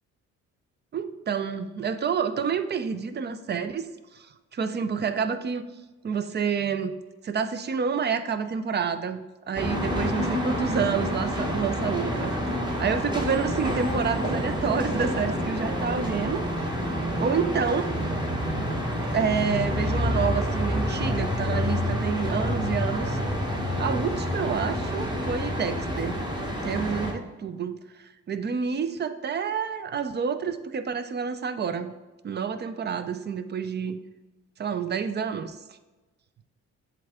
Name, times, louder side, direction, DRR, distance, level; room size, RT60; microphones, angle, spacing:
voice 1, 0.9-4.3 4.5-5.6 6.0-7.0 7.2-12.4 12.8-16.7 17.2-17.9 19.0-23.2 23.8-26.2 26.6-32.0 32.2-34.0 34.6-35.6, right 6 dB, 35° right, 10 dB, 0.5 m, -28 dB
sound 1, 9.6-27.1, equal, 15° right, 1.2 m, -28 dB
7.6 x 3.5 x 3.6 m, 1.1 s
cardioid pair, 90°, 30 cm